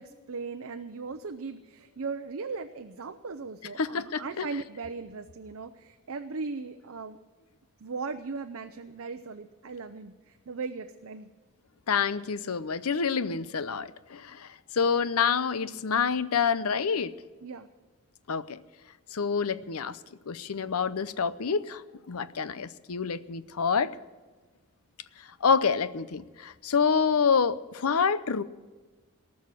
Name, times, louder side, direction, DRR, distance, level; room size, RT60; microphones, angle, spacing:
voice 1, 0.0-7.2 7.8-11.3 17.4-17.7, right 4 dB, 65° right, 7 dB, 0.6 m, -38 dB
voice 2, 3.8-4.5 11.9-14.5 14.7-17.1 18.3-18.6 19.1-20.0 20.3-23.9 25.4-28.4, left 6 dB, 80° left, 15 dB, 0.7 m, -27 dB
18.5 x 6.5 x 9.7 m, 1.3 s
head